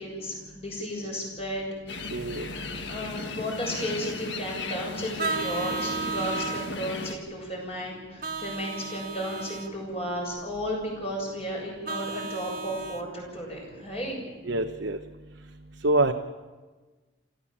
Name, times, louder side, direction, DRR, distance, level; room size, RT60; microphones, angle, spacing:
voice 1, 0.0-2.1 2.9-14.2, equal, 30° left, -1 dB, 6.8 m, -34 dB
sound 1, 1.9-7.1, left 3 dB, 65° left, 1.7 m, -36 dB
voice 2, 2.1-2.5 14.4-15.0 15.8-16.1, right 2 dB, 70° right, 3 dB, 1.0 m, -25 dB
Vehicle horn car horn honking, 5.2-6.7 8.2-9.7 11.8-13.0, right 3 dB, 45° right, 1.4 m, -33 dB
28.0 x 15.0 x 7.4 m, 1.3 s
head